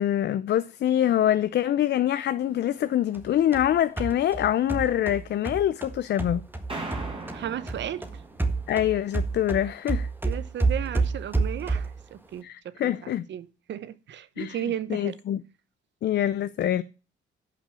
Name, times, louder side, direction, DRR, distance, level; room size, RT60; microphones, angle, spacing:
voice 1, 0.0-6.5 8.7-10.1 12.4-13.2 14.4-15.4 16.0-16.8, left 11 dB, 60° left, 0.6 m, -25 dB
sound 1, 3.1-7.4 7.7-12.1, right 3 dB, 10° right, 1.7 m, -29 dB
sound 2, 6.7-9.1, right 2 dB, 25° right, 5.0 m, -39 dB
voice 2, 7.3-8.2 10.2-15.2, right 10 dB, 65° right, 1.0 m, -35 dB
11.0 x 6.0 x 6.9 m
cardioid pair, 90°, 20 cm